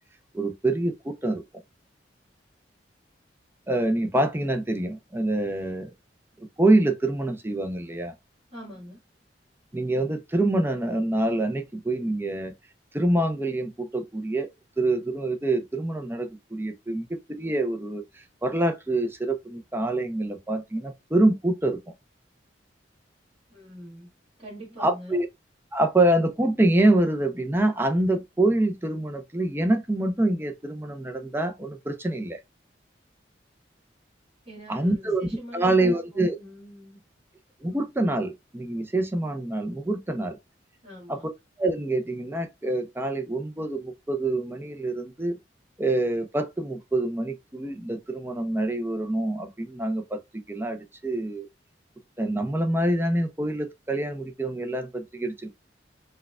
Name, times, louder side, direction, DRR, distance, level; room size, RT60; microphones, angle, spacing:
voice 1, 0.3-1.4 3.7-5.9 6.6-8.1 9.7-12.5 12.9-14.5 14.8-21.8 24.8-25.3 25.7-32.4 34.7-35.3 35.5-36.4 37.6-40.4 41.1-41.2 41.6-45.4 45.8-50.2 50.5-51.5 52.2-55.6, right 2 dB, 15° right, 0.6 m, -26 dB
voice 2, 8.5-9.0 23.5-24.1 24.4-25.1 34.5-37.0 40.8-41.3, equal, 35° right, 1.8 m, -44 dB
4.5 x 2.3 x 2.3 m
head